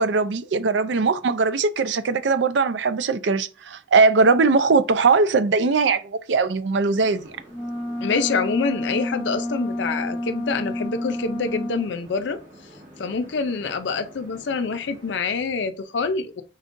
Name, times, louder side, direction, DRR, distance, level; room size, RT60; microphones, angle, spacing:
voice 1, 0.0-7.4, right 4 dB, 80° right, 0.5 m, -20 dB
sound 1, 6.9-15.1, equal, 45° right, 1.7 m, -48 dB
sound 2, 7.5-11.9, left 1 dB, 30° left, 0.9 m, -29 dB
voice 2, 8.0-12.4 13.0-16.4, left 4 dB, 75° left, 0.5 m, -26 dB
5.1 x 4.0 x 2.5 m
head